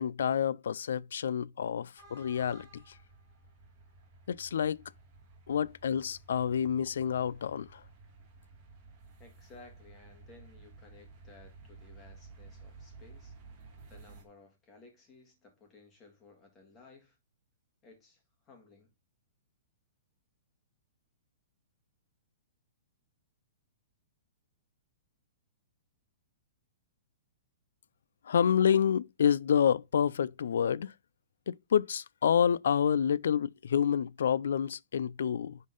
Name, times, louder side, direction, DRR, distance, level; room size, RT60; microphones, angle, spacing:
voice 1, 0.0-2.8 4.3-4.8 5.5-7.8 28.3-30.9 31.5-35.6, left 8 dB, 70° left, 0.3 m, -28 dB
sound 1, 2.0-14.2, right 3 dB, 20° right, 1.6 m, -54 dB
voice 2, 9.2-13.4 13.9-17.2 17.8-18.9, left 3 dB, 15° left, 1.8 m, -57 dB
10.0 x 3.8 x 3.8 m
hypercardioid pair, 180°, 0 cm